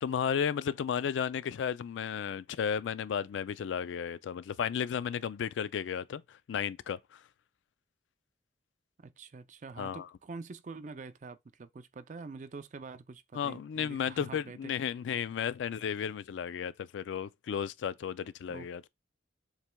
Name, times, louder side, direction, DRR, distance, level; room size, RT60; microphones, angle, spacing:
voice 1, 0.0-7.2 9.8-10.1 13.3-18.8, left 7 dB, 85° left, 0.3 m, -34 dB
voice 2, 9.0-14.7 18.5-18.7, right 4 dB, 40° right, 0.4 m, -46 dB
7.2 x 3.2 x 2.2 m
head